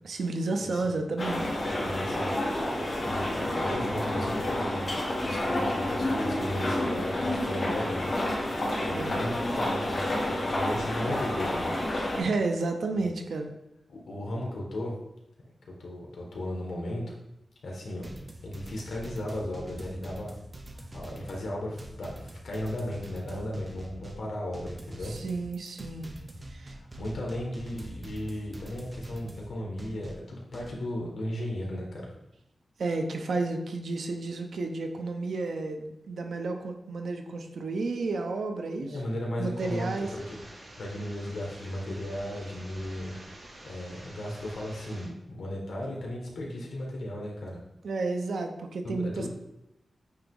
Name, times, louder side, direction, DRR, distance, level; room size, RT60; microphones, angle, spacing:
voice 1, 0.0-1.6 8.9-9.2 12.2-13.5 25.0-26.1 26.5-26.8 32.8-39.0 39.4-40.1 47.8-49.3, right 3 dB, 75° right, 5 dB, 0.7 m, -31 dB
sound 1, 1.2-12.2, left 1 dB, 40° left, 2.0 m, -29 dB
voice 2, 1.6-4.9 5.2-8.1 8.4-11.7 13.9-15.0 15.8-17.1 17.6-18.0 18.4-20.3 20.7-25.1 26.8-32.1 38.8-40.4 40.8-43.1 43.6-47.6 48.8-49.3, left 1 dB, 80° left, -2 dB, 1.6 m, -36 dB
sound 2, 18.0-30.7, right 1 dB, 25° right, 0.7 m, -44 dB
sound 3, 39.6-45.1, right 1 dB, 55° right, 2.0 m, -48 dB
8.5 x 3.0 x 3.8 m, 0.88 s
wide cardioid pair, 140°, 0 cm